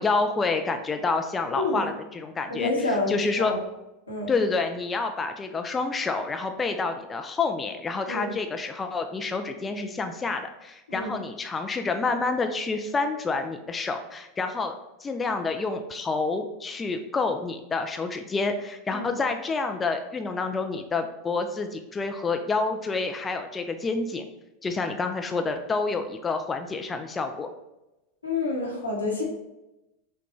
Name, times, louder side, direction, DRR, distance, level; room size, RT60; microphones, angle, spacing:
voice 1, 0.0-2.7 3.1-3.5 4.3-14.7 15.0-24.2 24.6-27.5, left 4 dB, 20° left, 6 dB, 0.3 m, -28 dB
voice 2, 2.5-3.6 4.1-4.3 8.1-8.3 10.9-11.1 18.9-19.1 28.2-29.2, left 2 dB, 85° left, -3 dB, 1.1 m, -28 dB
5.8 x 2.3 x 3.0 m, 0.97 s
figure-of-eight pair, 85°, 0 cm